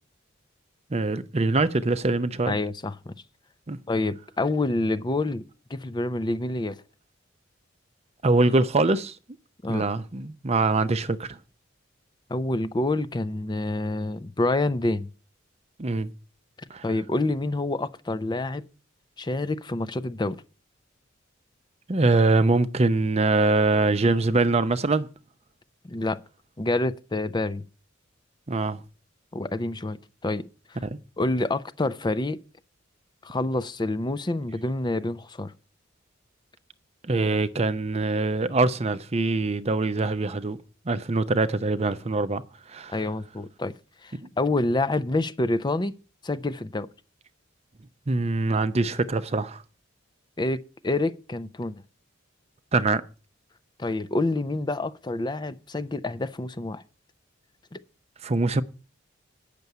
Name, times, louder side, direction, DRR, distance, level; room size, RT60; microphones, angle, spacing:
voice 1, 0.9-2.6 3.7-3.8 8.2-9.2 9.7-11.4 15.8-16.1 16.7-16.8 21.9-25.1 28.5-28.8 30.8-31.0 37.1-40.6 40.9-42.4 42.7-42.9 48.1-49.6 52.7-53.0 58.2-58.6, right 3 dB, 30° right, 0.6 m, -23 dB
voice 2, 2.5-3.1 3.9-5.4 5.7-6.8 9.6-9.8 12.3-15.1 16.8-18.6 19.2-20.4 25.9-26.2 26.6-27.6 29.3-30.0 30.2-30.8 31.2-32.4 33.2-35.5 42.9-43.7 44.0-45.9 46.2-46.9 50.4-50.6 50.8-51.8 53.8-56.8 57.7-57.8, left 2 dB, 20° left, 0.5 m, -27 dB
9.3 x 6.7 x 8.3 m
head